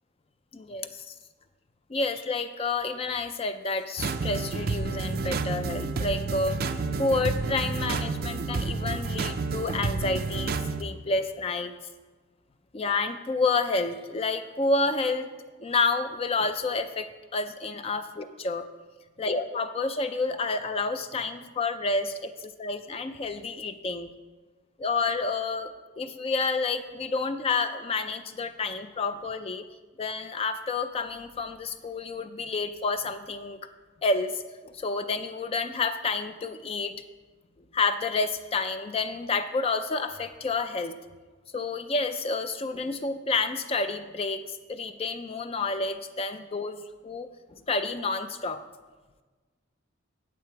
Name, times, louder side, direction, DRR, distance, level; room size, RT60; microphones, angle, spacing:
voice 1, 0.5-1.1 1.9-11.7 12.7-15.3 15.6-18.7 19.2-24.1 24.8-29.6 30.0-33.7 34.0-37.0 37.7-40.9 41.5-48.6, left 3 dB, 25° left, 9 dB, 0.3 m, -29 dB
sound 1, 4.0-10.8, right 4 dB, 45° right, 0.4 m, -30 dB
8.5 x 8.4 x 4.6 m, 1.3 s
head